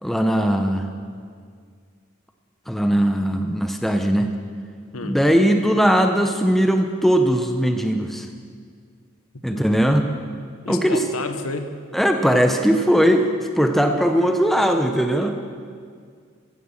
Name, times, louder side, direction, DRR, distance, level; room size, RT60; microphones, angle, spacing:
voice 1, 0.0-0.9 2.7-4.3 5.0-8.3 9.4-10.1 10.7-11.0 11.9-13.3 13.6-15.4, equal, ahead, 5 dB, 0.8 m, -19 dB
voice 2, 9.3-9.7 10.6-11.7, left 3 dB, 85° left, 8 dB, 1.1 m, -31 dB
15.0 x 11.0 x 7.3 m, 2.1 s
head